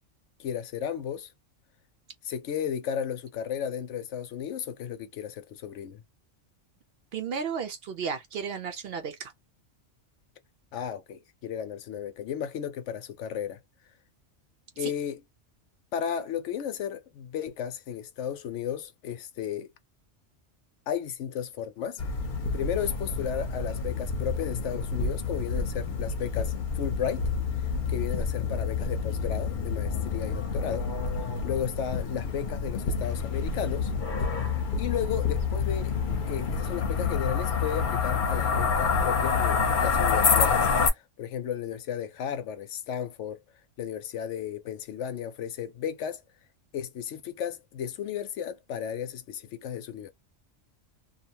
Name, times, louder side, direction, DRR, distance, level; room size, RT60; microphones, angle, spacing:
voice 1, 0.4-1.3 2.2-6.0 10.7-13.6 14.8-15.2 15.9-19.7 20.9-22.0 22.5-27.3 27.6-30.9 31.4-33.9 34.8-35.9 36.3-43.4 43.8-46.2 46.7-50.1, left 8 dB, 75° left, 0.9 m, -34 dB
voice 2, 7.1-9.3 14.8-14.9, right 6 dB, 60° right, 0.7 m, -33 dB
sound 1, 22.0-40.9, left 5 dB, 45° left, 0.9 m, -28 dB
2.8 x 2.1 x 2.8 m
omnidirectional pair, 1.3 m